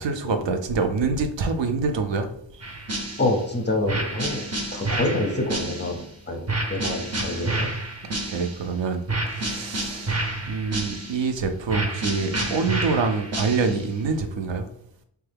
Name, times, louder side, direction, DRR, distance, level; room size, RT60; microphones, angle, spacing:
voice 1, 0.0-2.3 2.6-2.8 8.1-9.0 9.3-10.2 10.5-14.7, right 4 dB, 70° right, 6 dB, 0.6 m, -26 dB
sound 1, 2.6-3.5 3.9-6.1 6.5-8.7 9.1-11.3 11.7-13.9, right 2 dB, 35° right, 0.7 m, -29 dB
voice 2, 3.2-6.4 6.7-7.7, left 2 dB, 25° left, 2 dB, 0.5 m, -27 dB
3.2 x 2.3 x 3.3 m, 0.68 s
wide cardioid pair, 105°, 46 cm